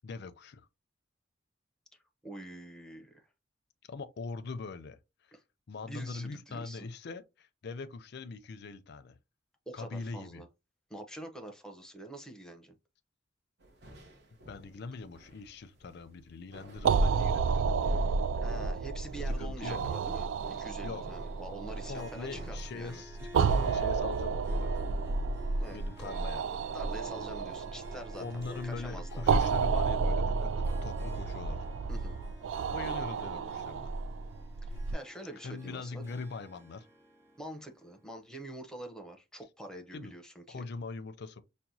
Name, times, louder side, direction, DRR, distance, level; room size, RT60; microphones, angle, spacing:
voice 1, 0.0-0.7 3.9-5.0 5.7-9.2 9.7-10.4 14.5-17.7 19.3-19.9 20.8-21.0 21.8-24.7 25.7-26.5 28.2-30.5 30.8-31.7 32.7-33.9 35.4-36.9 39.9-40.1 40.5-41.4, left 4 dB, 60° left, 0.5 m, -42 dB
voice 2, 2.2-3.3 5.3-5.4 5.8-6.9 9.7-10.5 10.9-12.8 18.4-23.0 25.6-26.1 26.7-29.5 31.9-32.2 34.6-36.0 37.4-40.7, right 1 dB, 5° left, 0.7 m, -46 dB
sound 1, 13.6-23.0, right 1 dB, 60° right, 1.0 m, -53 dB
sound 2, 16.8-34.9, right 4 dB, 80° right, 0.3 m, -31 dB
Harp, 21.8-38.3, equal, 15° right, 1.3 m, -52 dB
5.8 x 2.2 x 2.6 m
head